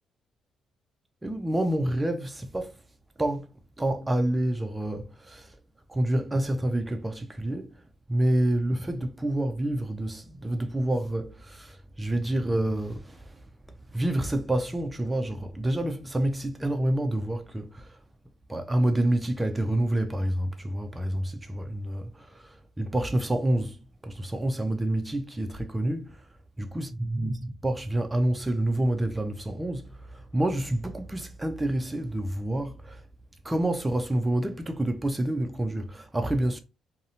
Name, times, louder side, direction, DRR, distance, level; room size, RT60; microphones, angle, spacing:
voice 1, 1.2-2.8 3.2-3.5 3.8-5.5 5.9-7.7 8.1-13.4 13.9-18.0 18.5-23.8 24.0-26.2 26.6-33.0 33.4-36.6, right 1 dB, 15° right, 0.3 m, -28 dB
2.6 x 2.0 x 2.7 m
cardioid pair, 90°, 0 cm